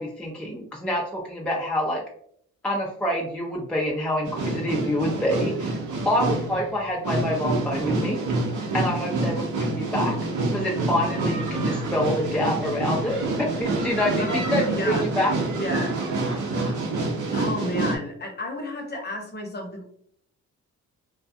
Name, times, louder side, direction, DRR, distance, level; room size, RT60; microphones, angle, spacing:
voice 1, 0.0-2.0 2.6-5.8 6.0-8.2 8.7-10.2 10.5-15.3, left 1 dB, 5° left, -3 dB, 0.4 m, -26 dB
sound 1, 4.3-18.0, right 2 dB, 70° right, 0.7 m, -27 dB
sound 2, 11.4-16.9, right 3 dB, 35° right, 0.7 m, -45 dB
voice 2, 14.2-15.1 15.5-16.0 17.3-19.8, left 1 dB, 30° left, 2 dB, 0.8 m, -31 dB
2.3 x 2.2 x 2.6 m, 0.65 s
cardioid pair, 85°, 32 cm